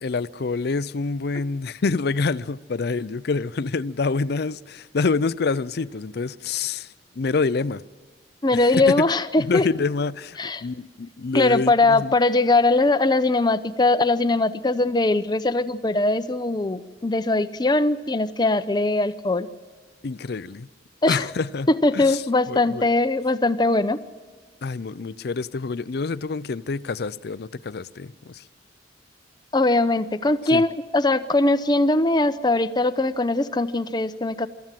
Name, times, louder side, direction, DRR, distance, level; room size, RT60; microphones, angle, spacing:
voice 1, 0.0-7.8 8.5-9.0 9.4-12.1 20.0-20.7 21.1-21.7 21.9-22.2 22.5-22.9 24.6-28.4 30.5-30.6, left 4 dB, 60° left, 0.5 m, -27 dB
voice 2, 8.4-9.7 10.4-10.6 11.3-19.5 21.0-21.2 21.7-24.0 29.5-34.5, left 2 dB, 25° left, 0.7 m, -21 dB
24.5 x 14.0 x 7.5 m
head